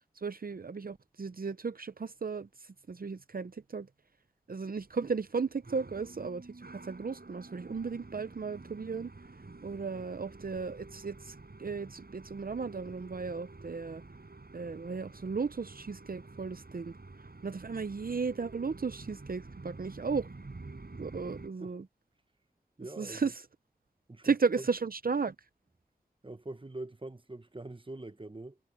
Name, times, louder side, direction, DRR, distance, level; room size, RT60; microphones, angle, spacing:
voice 1, 0.1-3.9 4.5-9.1 9.6-14.0 14.5-17.0 17.4-20.3 21.0-21.8 23.0-23.5 24.2-25.4, right 5 dB, 65° right, 0.6 m, -35 dB
sound 1, 4.8-21.5, right 3 dB, 85° right, 6.3 m, -49 dB
voice 2, 22.8-23.2 24.1-24.3 26.2-28.6, right 2 dB, 35° right, 1.1 m, -44 dB
wide cardioid pair, 40°, 16 cm